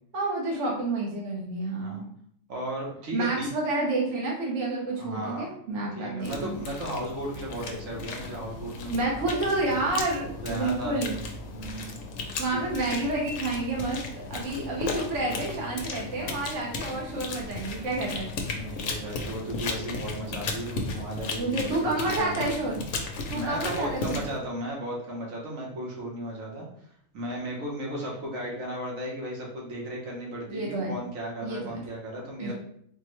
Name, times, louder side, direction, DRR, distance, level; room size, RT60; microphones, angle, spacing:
voice 1, 0.1-2.1 3.1-6.7 8.9-11.2 12.4-14.0 14.3-18.3 21.4-22.8 23.3-24.2 30.5-31.0 31.4-31.8 32.4-32.5, right 2 dB, 70° right, -2 dB, 1.1 m, -29 dB
voice 2, 2.5-3.5 5.0-5.5 6.0-9.0 10.4-11.0 11.5-11.9 12.5-12.6 18.5-22.5 23.3-26.7 27.1-32.5, right 1 dB, 85° right, -3 dB, 1.3 m, -35 dB
sound 1, 6.2-24.4, left 3 dB, 85° left, 1.0 m, -36 dB
4.1 x 2.1 x 3.0 m, 0.66 s
omnidirectional pair, 1.4 m